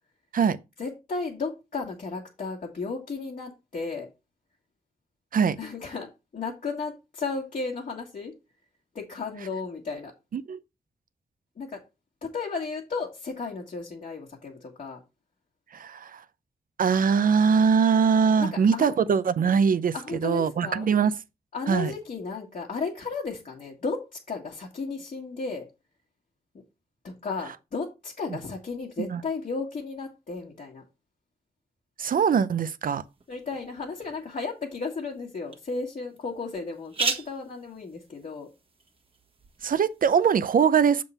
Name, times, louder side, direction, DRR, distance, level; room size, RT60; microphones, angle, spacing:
voice 1, 0.8-4.1 5.6-8.3 8.9-10.1 11.6-11.8 12.2-15.0 18.4-19.0 19.9-20.9 21.5-25.7 27.0-30.8 33.3-38.5, left 4 dB, 50° left, 1.7 m, -34 dB
voice 2, 15.7-16.2 16.8-21.1 21.7-21.9 29.0-29.2 32.0-33.0 39.6-41.0, right 6 dB, 60° right, 0.6 m, -22 dB
sound 1, 32.9-40.4, right 4 dB, 35° right, 1.4 m, -38 dB
7.2 x 3.8 x 5.5 m
wide cardioid pair, 115°, 16 cm